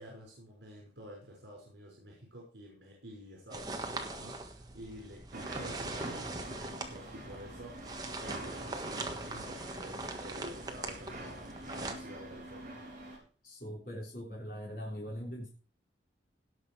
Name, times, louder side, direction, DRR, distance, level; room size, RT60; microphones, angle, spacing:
voice 1, 0.0-12.8, equal, 70° right, -3 dB, 5.9 m, -49 dB
sound 1, 3.5-11.9, right 2 dB, 20° right, 1.5 m, -41 dB
sound 2, 5.3-13.2, right 1 dB, 45° right, 4.7 m, -46 dB
voice 2, 13.4-15.5, equal, 50° left, -3 dB, 3.6 m, -41 dB
17.5 x 6.4 x 4.8 m, 0.38 s
head